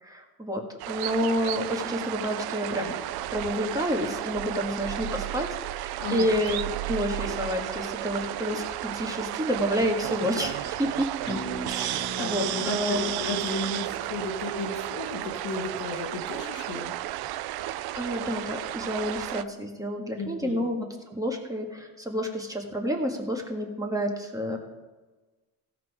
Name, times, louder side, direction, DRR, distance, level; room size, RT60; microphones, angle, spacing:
voice 1, 0.0-2.9 3.3-11.1 11.7-13.1 17.7-24.6, equal, 10° right, 1 dB, 1.7 m, -29 dB
sound 1, 0.8-19.4, right 14 dB, 70° right, 0.6 m, -33 dB
voice 2, 6.0-6.3 12.2-16.9 20.2-20.6, left 2 dB, 85° left, 2 dB, 1.9 m, -34 dB
sound 2, 11.3-15.1, equal, 15° left, 2.4 m, -39 dB
16.5 x 6.1 x 4.9 m, 1.2 s
cardioid pair, 125°, 39 cm